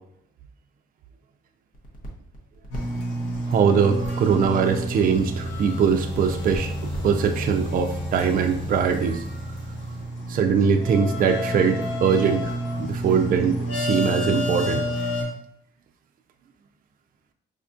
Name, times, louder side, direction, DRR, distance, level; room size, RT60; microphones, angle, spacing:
sound 1, 1.7-7.6, right 1 dB, 45° left, 0.9 m, -40 dB
sound 2, 2.7-15.2, equal, 85° left, 1.0 m, -29 dB
voice 1, 3.5-6.7 7.0-9.2 10.3-12.5 12.8-14.8, right 6 dB, 45° right, 4 dB, 0.4 m, -22 dB
5.0 x 2.3 x 2.5 m, 0.70 s
cardioid pair, 90°, 20 cm